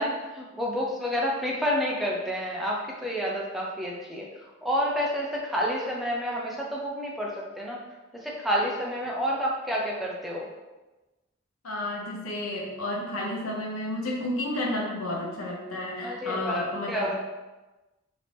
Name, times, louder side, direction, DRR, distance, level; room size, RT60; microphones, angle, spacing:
voice 1, 0.0-4.3 4.6-7.8 8.1-10.5 16.0-17.1, equal, ahead, -4 dB, 0.6 m, -29 dB
voice 2, 11.6-17.1, left 1 dB, 85° left, -2 dB, 1.0 m, -31 dB
5.0 x 2.8 x 3.3 m, 1.1 s
head